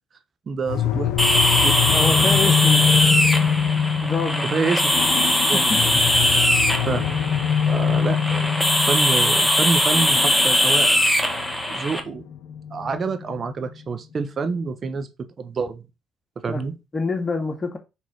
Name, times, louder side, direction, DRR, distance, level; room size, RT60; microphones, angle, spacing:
voice 1, 0.5-1.1 1.5-1.8 2.2-2.3 4.5-4.9 5.5-6.0 6.9-7.1 7.7-10.9 11.7-12.2 12.7-15.1 15.4-15.8 16.4-16.8, right 4 dB, 45° right, 1.2 m, -27 dB
sound 1, 0.7-13.4, left 8 dB, 65° left, 0.8 m, -24 dB
sound 2, 1.2-12.0, equal, 5° left, 1.8 m, -20 dB
voice 2, 1.9-2.9 4.0-4.6 5.5-5.9 16.5-17.8, left 3 dB, 30° left, 2.1 m, -27 dB
6.2 x 3.9 x 4.7 m
hypercardioid pair, 50°, 0 cm